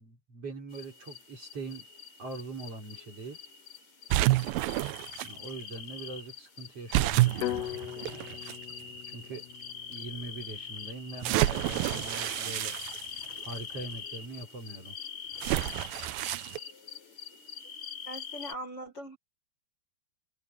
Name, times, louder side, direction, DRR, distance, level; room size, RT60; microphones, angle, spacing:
voice 1, 0.0-1.9 2.2-3.4 5.2-7.7 9.1-9.5 9.9-12.8 13.4-15.0, right 3 dB, 35° right, 5.7 m, -42 dB
sound 1, 0.7-18.5, left 8 dB, 45° left, 6.6 m, -44 dB
sound 2, 4.1-5.3 6.9-8.6 9.3-9.4 11.2-13.6 15.4-16.6, right 18 dB, 80° right, 2.2 m, -29 dB
sound 3, 7.4-11.5, left 14 dB, 85° left, 2.9 m, -40 dB
voice 2, 18.1-19.2, right 1 dB, 25° left, 5.0 m, -40 dB
omnidirectional pair, 4.7 m